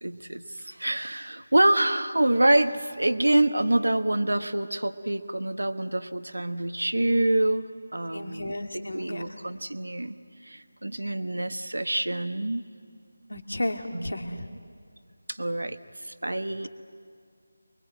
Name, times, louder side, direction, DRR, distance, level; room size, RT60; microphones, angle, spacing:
voice 1, 0.0-10.1 10.4-12.6 13.9-14.5 15.3-16.7, right 1 dB, 80° right, 10 dB, 1.2 m, -26 dB
voice 2, 8.1-9.3 13.3-14.5, left 1 dB, 75° left, 5 dB, 2.2 m, -33 dB
24.0 x 22.0 x 8.0 m, 2.2 s
figure-of-eight pair, 165°, 0 cm